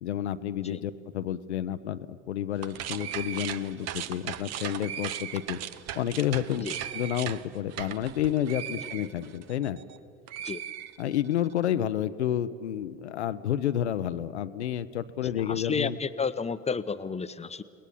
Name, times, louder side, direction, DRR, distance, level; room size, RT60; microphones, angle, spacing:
voice 1, 0.0-5.6 6.0-6.7 6.9-9.8 11.0-16.0, left 11 dB, 80° left, 12 dB, 0.8 m, -30 dB
sound 1, 2.5-10.0 10.3-11.4, right 10 dB, 50° right, 1.0 m, -38 dB
voice 2, 15.2-17.6, left 5 dB, 20° left, 13 dB, 0.9 m, -32 dB
29.5 x 19.5 x 7.3 m, 2.4 s
figure-of-eight pair, 60°, 33 cm